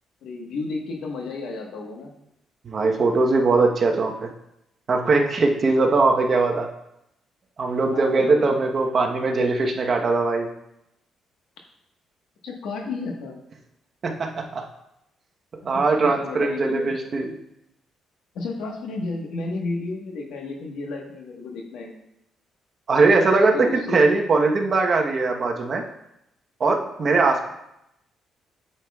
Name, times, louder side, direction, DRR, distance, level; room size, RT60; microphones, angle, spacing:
voice 1, 0.2-2.1 7.9-8.6 12.4-13.4 15.7-16.9 18.3-21.9 23.5-24.0, left 3 dB, 80° left, 1 dB, 1.3 m, -32 dB
voice 2, 2.6-4.3 4.9-6.7 7.6-10.5 14.0-14.7 15.6-17.3 22.9-25.8 26.6-27.5, right 3 dB, 45° right, 2 dB, 1.0 m, -20 dB
8.7 x 6.7 x 2.4 m, 0.83 s
cardioid pair, 90°, 0 cm